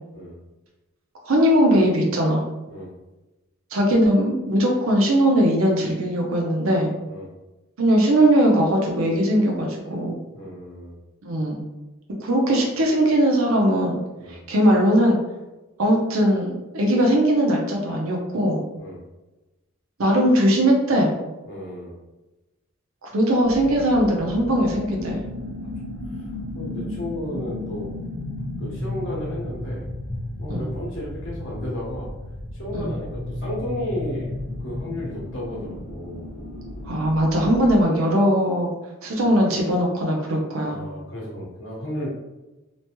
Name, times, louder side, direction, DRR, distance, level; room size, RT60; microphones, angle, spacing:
voice 1, 1.3-2.4 3.7-6.9 7.8-10.2 11.2-11.6 12.2-14.0 14.3-15.2 15.8-18.6 20.0-21.1 23.0-25.2 30.5-30.7 32.7-32.9 36.9-38.7 39.0-40.8, equal, 75° right, 0 dB, 0.6 m, -20 dB
voice 2, 10.3-10.9 14.2-14.4 18.8-19.0 21.5-21.9 25.6-25.7 26.1-27.9 28.6-29.9 30.4-32.1 32.5-34.3 34.6-36.3 39.3-39.4 40.6-42.1, left 1 dB, 65° left, -4 dB, 1.0 m, -33 dB
sound 1, 23.4-37.8, left 1 dB, 35° right, 1.3 m, -33 dB
3.0 x 2.2 x 2.9 m, 1.1 s
head